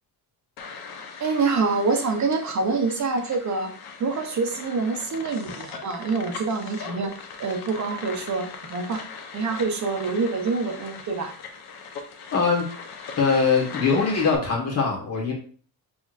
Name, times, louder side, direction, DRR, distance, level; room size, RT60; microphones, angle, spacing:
sound 1, 0.6-14.4, left 5 dB, 65° left, 0.9 m, -40 dB
voice 1, 1.2-3.7 4.0-7.1 7.4-9.0 9.3-11.3, right 4 dB, 45° right, 4 dB, 0.7 m, -26 dB
voice 2, 12.3-12.6 13.2-15.3, left 5 dB, 35° left, -1 dB, 1.6 m, -22 dB
6.0 x 3.5 x 2.5 m, 0.43 s
cardioid pair, 160°, 41 cm